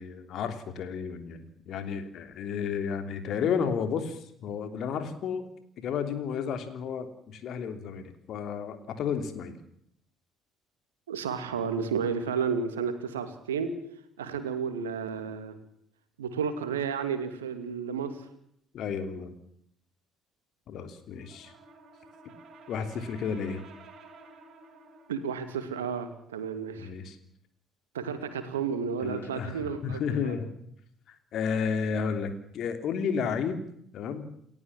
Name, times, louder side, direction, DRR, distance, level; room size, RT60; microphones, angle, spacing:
voice 1, 0.0-5.5 5.8-9.6 18.7-19.3 20.7-21.5 22.7-23.6 26.8-27.2 29.0-30.5 31.1-33.6 33.9-34.3, left 6 dB, 50° left, 9 dB, 3.2 m, -32 dB
voice 2, 11.1-13.7 14.2-15.6 16.2-18.3 25.1-26.9 27.9-30.4, right 6 dB, 75° right, 10 dB, 2.5 m, -32 dB
Brass instrument, 21.1-25.3, right 3 dB, 45° right, 6.0 m, -52 dB
29.5 x 14.5 x 7.5 m, 0.70 s
figure-of-eight pair, 50°, 0 cm